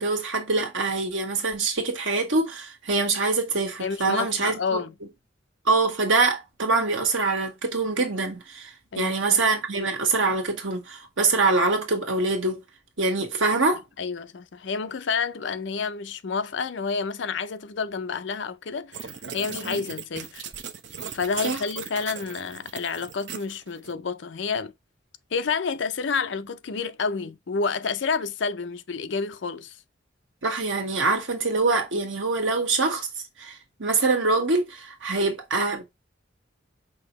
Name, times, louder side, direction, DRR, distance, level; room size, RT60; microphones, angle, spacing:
voice 1, 0.0-4.8 5.6-12.6 13.0-13.8 19.5-19.8 21.4-21.6 30.4-33.1 33.4-35.8, right 3 dB, 90° right, 1.5 m, -24 dB
voice 2, 3.8-4.9 8.9-9.4 14.0-20.5 21.1-24.7 25.3-29.8, left 5 dB, 70° left, 0.5 m, -29 dB
sound 1, 18.9-23.9, right 7 dB, 65° right, 0.7 m, -38 dB
5.7 x 2.8 x 3.0 m
head